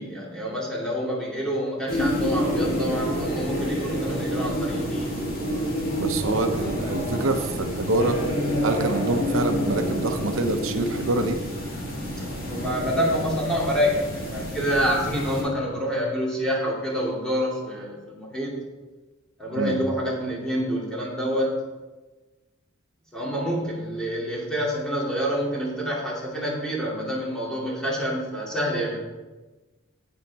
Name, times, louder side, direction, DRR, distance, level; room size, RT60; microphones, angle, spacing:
voice 1, 0.0-5.1 12.2-18.6 19.4-21.6 23.1-29.0, equal, 5° left, -5 dB, 2.6 m, -27 dB
sound 1, 1.9-15.4, equal, 90° left, 3.5 m, -28 dB
voice 2, 6.0-8.2 8.6-11.4 19.6-19.8, right 2 dB, 75° right, 6 dB, 0.8 m, -25 dB
9.8 x 8.3 x 4.2 m, 1.2 s
head